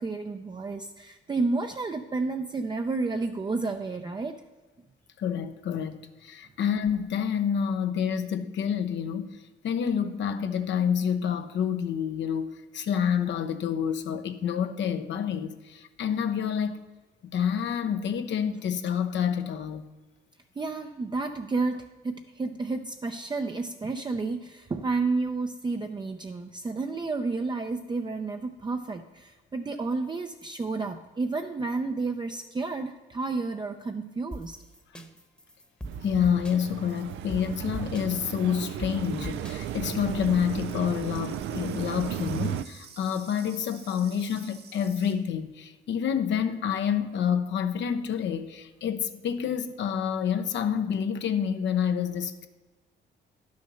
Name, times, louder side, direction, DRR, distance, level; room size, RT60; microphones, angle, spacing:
voice 1, 0.0-4.4 20.6-34.6, right 3 dB, 20° right, 0.5 m, -31 dB
voice 2, 5.2-16.8 17.3-19.9 34.9-35.0 36.0-52.5, left 8 dB, 65° left, 0.8 m, -28 dB
sound 1, 34.3-40.7, right 1 dB, 5° left, 1.1 m, -43 dB
sound 2, 35.8-42.6, right 11 dB, 75° right, 0.4 m, -35 dB
sound 3, 36.7-45.1, right 5 dB, 55° right, 1.3 m, -53 dB
10.5 x 6.5 x 5.5 m
cardioid pair, 90°, 20 cm